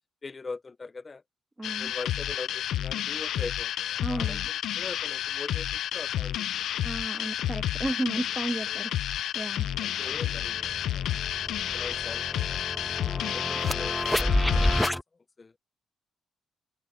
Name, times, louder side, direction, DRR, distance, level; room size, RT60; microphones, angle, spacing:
voice 1, 0.2-1.2 1.8-4.4 4.7-6.7 8.2-8.3 8.7-8.9 9.8-10.7 10.9-15.0 15.4-15.5, left 4 dB, 30° left, 0.8 m, -42 dB
sound 1, 1.6-14.9, left 12 dB, 75° left, 0.5 m, -31 dB
voice 2, 1.6-1.9 4.0-4.5 6.8-9.7, right 2 dB, 15° right, 1.5 m, -34 dB
sound 2, 9.6-9.7 10.0-15.0, left 1 dB, 5° left, 0.4 m, -30 dB
cardioid pair, 90°, 0 cm